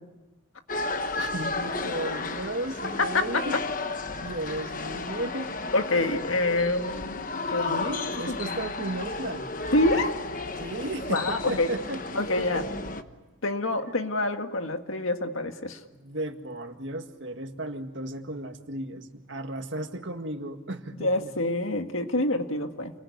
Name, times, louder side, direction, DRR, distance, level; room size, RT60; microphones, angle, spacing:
sound 1, 0.7-13.0, left 3 dB, 40° left, 1.1 m, -33 dB
voice 1, 1.2-3.6 4.2-5.5 6.5-6.8 7.7-9.5 10.6-12.6 15.9-21.3, right 1 dB, 65° right, 6 dB, 2.0 m, -35 dB
voice 2, 3.0-3.6 5.7-7.8 8.3-8.6 9.7-10.1 11.1-11.7 12.2-12.6 13.4-15.8 21.0-22.9, left 2 dB, 90° left, 6 dB, 1.8 m, -27 dB
29.0 x 21.5 x 9.4 m, 1.2 s
head